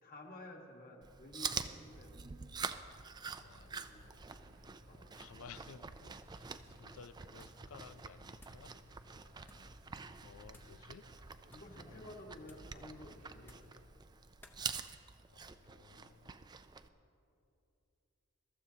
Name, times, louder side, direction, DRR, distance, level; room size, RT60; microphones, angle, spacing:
voice 1, 0.0-2.2 3.4-4.2 4.9-5.1 9.5-9.7 11.5-13.7, left 1 dB, 45° left, 1 dB, 1.5 m, -53 dB
Chewing mastication, 1.0-16.9, right 5 dB, 20° right, 0.3 m, -46 dB
voice 2, 3.2-4.2 5.1-8.7 10.2-11.1 11.9-12.1 15.3-16.5, left 6 dB, 80° left, 14 dB, 0.4 m, -57 dB
sound 1, 3.3-13.9, left 1 dB, 75° right, 1.6 m, -61 dB
sound 2, 7.3-7.7 8.0-8.7 9.4-9.8 10.5-10.8 11.4-11.8 12.4-12.8 13.4-13.8 14.4-14.6, left 1 dB, 10° left, 0.7 m, -62 dB
22.0 x 13.5 x 2.8 m, 2.8 s
head